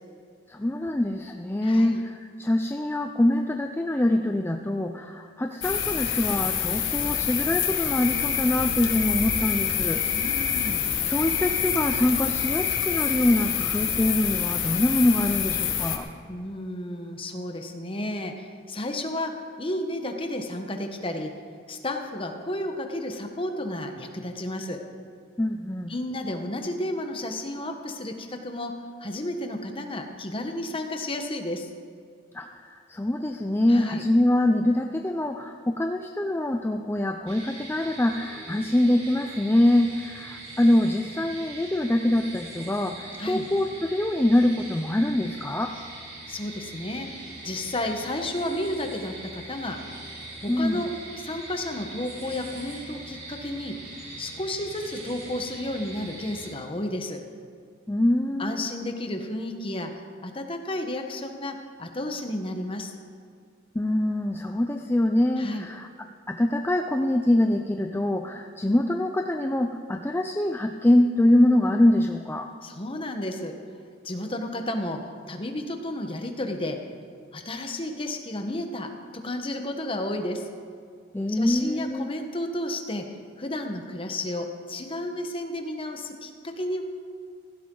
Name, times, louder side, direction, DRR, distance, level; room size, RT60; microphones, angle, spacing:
voice 1, 0.5-10.7 11.0-16.1 25.4-25.9 32.3-45.7 50.5-50.9 57.9-58.7 63.7-65.9 66.3-72.5 81.1-82.1, left 1 dB, 10° left, 4 dB, 0.4 m, -24 dB
voice 2, 1.6-2.0 10.1-10.9 16.3-21.3 21.7-24.8 25.9-31.7 33.7-34.0 43.2-43.5 46.3-47.1 47.4-49.8 50.4-53.8 54.2-57.2 58.4-59.9 60.2-62.9 65.4-65.7 72.6-73.5 74.0-75.0 75.3-76.8 77.3-80.5 81.3-83.1 83.4-86.8, left 1 dB, 25° left, 4 dB, 1.2 m, -32 dB
sound 1, 5.6-16.0, left 8 dB, 70° left, 1.4 m, -26 dB
sound 2, 37.3-56.5, right 2 dB, 90° right, 4.6 m, -42 dB
16.0 x 15.5 x 3.9 m, 2.2 s
head